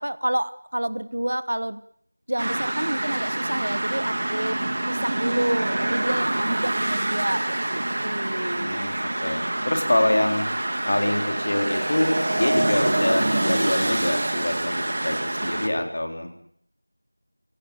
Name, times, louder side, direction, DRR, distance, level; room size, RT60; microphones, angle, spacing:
voice 1, 0.0-1.8 2.3-4.6 4.9-8.9, right 1 dB, 55° right, 17 dB, 1.1 m, -29 dB
sound 1, 2.4-15.7, right 1 dB, 35° right, 2.0 m, -26 dB
voice 2, 8.5-10.5 10.9-16.3, left 1 dB, 35° left, 4 dB, 4.0 m, -25 dB
26.5 x 18.0 x 8.9 m, 0.69 s
figure-of-eight pair, 175°, 0 cm